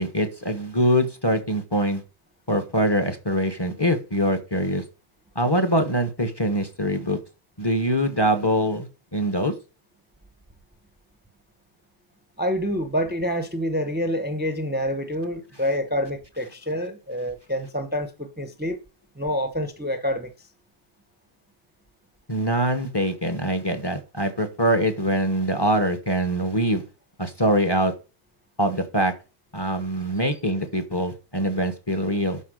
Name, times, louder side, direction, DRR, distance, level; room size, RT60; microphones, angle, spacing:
voice 1, 0.0-2.0 2.5-4.8 5.3-7.2 7.6-9.5 22.3-26.8 27.2-27.9 28.6-29.1 29.5-32.4, equal, 20° left, 1.2 m, -23 dB
voice 2, 12.4-18.8 19.2-20.5, equal, 10° right, 0.9 m, -27 dB
11.5 x 4.6 x 6.3 m
omnidirectional pair, 1.1 m